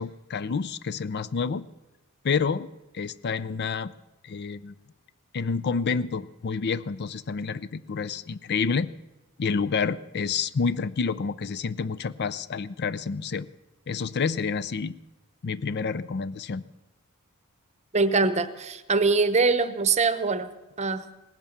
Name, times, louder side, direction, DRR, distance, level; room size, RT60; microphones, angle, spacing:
voice 1, 0.0-1.7 2.2-2.7 2.9-3.9 4.2-4.7 5.3-8.9 9.4-13.5 13.9-15.0 15.4-16.6, left 5 dB, 50° left, 17 dB, 0.5 m, -28 dB
voice 2, 17.9-20.5 20.8-21.0, right 4 dB, 30° right, 13 dB, 0.8 m, -23 dB
18.5 x 10.5 x 7.2 m, 1.0 s
head